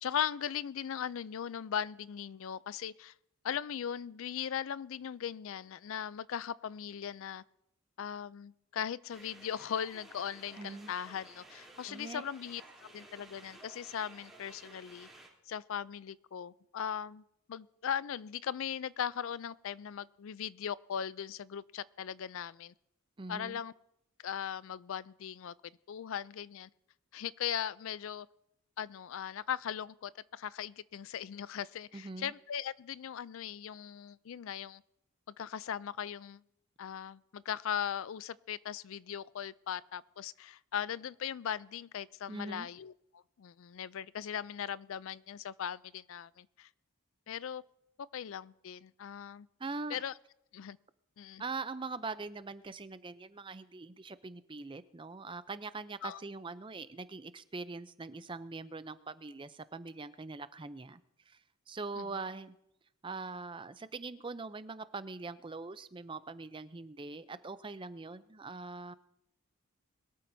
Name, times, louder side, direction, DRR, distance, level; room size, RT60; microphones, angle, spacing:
voice 1, 0.0-3.1 3.4-7.4 8.0-15.1 15.5-17.2 17.5-22.7 23.3-23.7 24.2-25.5 25.9-26.7 27.1-28.3 28.8-34.8 35.4-36.4 36.8-46.7 47.3-47.6 48.1-49.5 49.9-50.1 50.5-50.8 51.2-51.4 56.0-56.2 62.0-62.3, left 8 dB, 65° left, 19 dB, 0.4 m, -39 dB
sound 1, 9.1-15.3, right 1 dB, ahead, 3.3 m, -55 dB
voice 2, 10.6-10.9 11.9-12.2 23.2-23.6 31.9-32.3 42.3-42.7 49.6-50.0 51.4-61.0 61.3-61.4 61.7-62.5 63.0-68.9, right 3 dB, 20° right, 13 dB, 0.5 m, -42 dB
22.5 x 13.0 x 2.7 m, 0.80 s
head